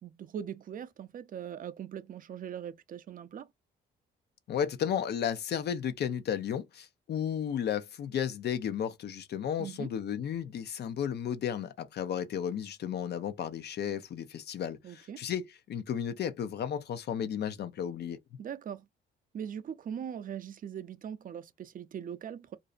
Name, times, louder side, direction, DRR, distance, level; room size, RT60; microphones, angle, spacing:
voice 1, 0.0-3.5 9.6-9.9 14.8-15.2 18.4-18.9 19.3-22.6, right 8 dB, 45° right, 0.4 m, -41 dB
voice 2, 4.5-18.2, left 8 dB, 55° left, 0.5 m, -33 dB
2.5 x 2.0 x 2.4 m
cardioid pair, 90°, 20 cm